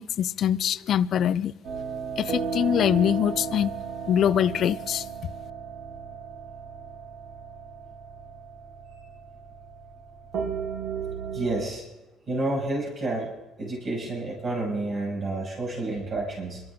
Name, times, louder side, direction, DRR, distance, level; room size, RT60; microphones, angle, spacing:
voice 1, 0.0-1.5 2.2-3.7 4.1-5.1, left 9 dB, 60° left, 16 dB, 0.5 m, -23 dB
sound 1, 1.6-11.6, right 5 dB, 65° right, 3.1 m, -35 dB
voice 2, 11.3-11.8 12.3-13.3 13.6-16.6, right 2 dB, 45° right, -3 dB, 6.4 m, -29 dB
28.0 x 12.5 x 3.7 m, 1.0 s
supercardioid pair, 70°, 0 cm